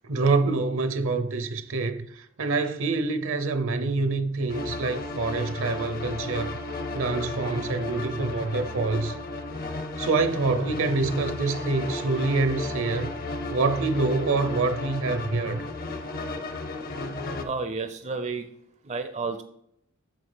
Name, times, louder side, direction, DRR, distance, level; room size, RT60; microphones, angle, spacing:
voice 1, 0.0-6.6 6.9-9.1 10.0-13.1 13.5-15.6, right 3 dB, 65° right, 0.8 m, -26 dB
sound 1, 4.5-17.4, left 2 dB, 45° left, 0.8 m, -34 dB
voice 2, 17.4-18.5 18.9-19.4, right 4 dB, 35° right, 0.5 m, -31 dB
9.1 x 6.6 x 3.4 m
head